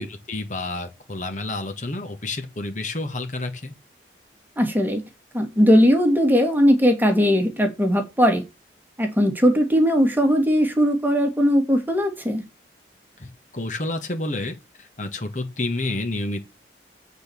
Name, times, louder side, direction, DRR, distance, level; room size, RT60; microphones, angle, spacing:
voice 1, 0.0-3.7 13.2-16.4, left 2 dB, 45° left, 1.5 m, -30 dB
voice 2, 4.6-5.0 5.3-8.4 9.0-12.4, equal, 10° right, 1.8 m, -19 dB
8.0 x 4.3 x 6.9 m
head